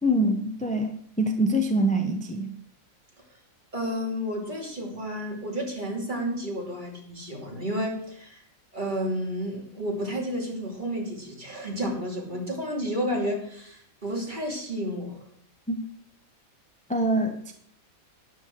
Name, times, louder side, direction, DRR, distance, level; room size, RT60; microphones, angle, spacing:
voice 1, 0.0-2.5 15.7-15.8 16.9-17.5, right 1 dB, 5° left, 4 dB, 0.8 m, -25 dB
voice 2, 3.7-8.4 8.7-15.2, equal, 35° right, -1 dB, 3.0 m, -31 dB
12.5 x 9.9 x 4.6 m, 0.65 s
omnidirectional pair, 1.5 m